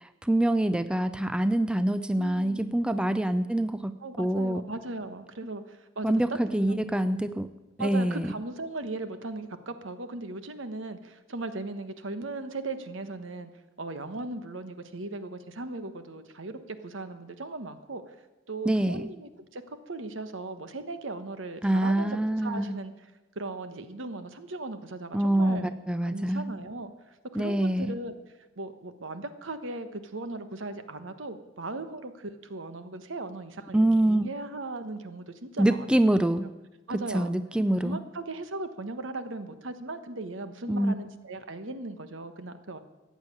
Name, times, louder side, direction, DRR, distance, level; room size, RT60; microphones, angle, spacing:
voice 1, 0.0-4.6 6.0-7.5 7.8-8.3 18.7-19.1 21.6-22.8 25.1-26.5 27.3-28.0 33.7-34.3 35.6-36.5 36.9-38.0 40.7-41.0, right 1 dB, 5° right, 12 dB, 0.4 m, -25 dB
voice 2, 2.2-2.8 4.0-6.1 6.7-7.4 7.8-13.5 13.8-18.0 18.5-22.9 23.3-25.7 26.0-26.9 27.3-28.1 28.6-35.9 36.9-37.3 37.8-42.8, right 2 dB, 90° right, 10 dB, 1.2 m, -38 dB
14.5 x 9.0 x 8.5 m, 1.1 s
head